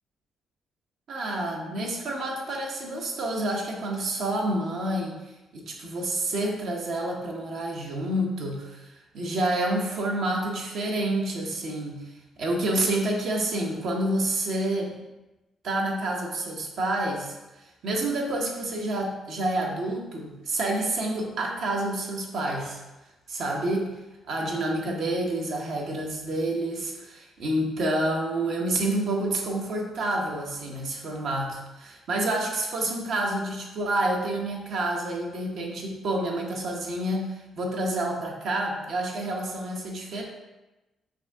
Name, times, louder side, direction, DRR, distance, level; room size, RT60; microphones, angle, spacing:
voice 1, 1.1-5.2 5.5-12.0 12.4-15.0 15.6-22.8 23.3-23.9 24.3-40.2, right 1 dB, 70° right, 0 dB, 0.9 m, -28 dB
5.1 x 2.7 x 3.5 m, 1.0 s
cardioid pair, 90°, 0 cm